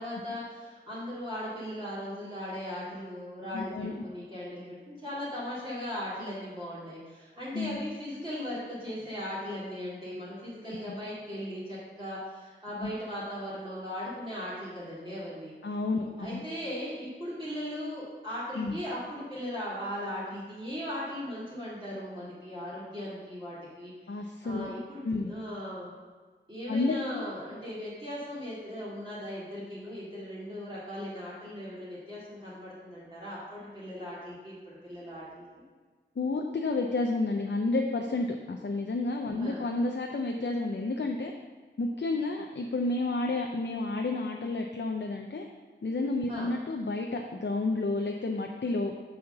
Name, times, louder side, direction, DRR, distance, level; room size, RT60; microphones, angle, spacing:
voice 1, 0.0-15.5 16.0-25.9 26.5-35.5 39.3-39.6 46.3-46.5, equal, 25° right, -10 dB, 2.4 m, -38 dB
voice 2, 3.5-4.0 7.5-7.8 12.8-12.9 15.6-16.4 18.6-18.8 24.1-24.7 25.0-25.3 26.7-27.2 36.2-41.3 41.8-45.5 45.8-48.9, left 2 dB, 70° left, 2 dB, 0.6 m, -30 dB
6.7 x 4.3 x 6.6 m, 1.4 s
wide cardioid pair, 50°, 19 cm